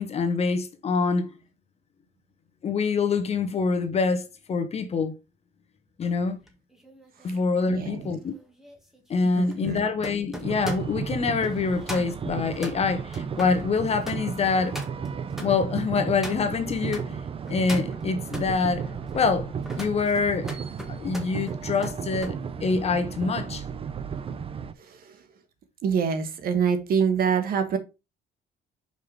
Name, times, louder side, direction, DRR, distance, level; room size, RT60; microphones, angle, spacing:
voice 1, 0.0-1.3 2.6-5.1 6.0-6.4 7.2-8.3 9.1-14.8 15.4-17.2 17.5-18.8 19.1-20.5 20.9-22.4 22.6-23.6, left 4 dB, 40° left, 1.1 m, -25 dB
sound 1, 6.4-17.1 17.4-18.5 19.0-22.4 22.7-23.0, equal, ahead, 1.7 m, -42 dB
voice 2, 7.7-8.0 9.3-9.8 25.0-25.2 25.8-27.8, right 6 dB, 60° right, 1.6 m, -25 dB
sound 2, 10.4-24.7, right 6 dB, 35° right, 0.6 m, -34 dB
5.7 x 4.8 x 4.8 m
cardioid pair, 110°, 17 cm